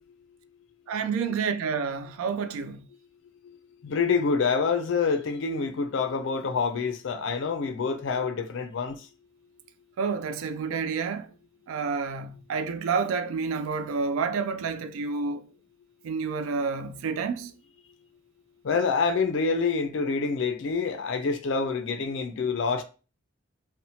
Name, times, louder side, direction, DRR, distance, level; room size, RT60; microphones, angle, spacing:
voice 1, 0.9-2.8 10.0-11.3 11.7-15.4 16.0-17.5, right 5 dB, 85° right, 0.3 m, -29 dB
voice 2, 3.9-8.9 18.7-22.8, left 5 dB, 60° left, 0.4 m, -26 dB
2.7 x 2.1 x 2.7 m
head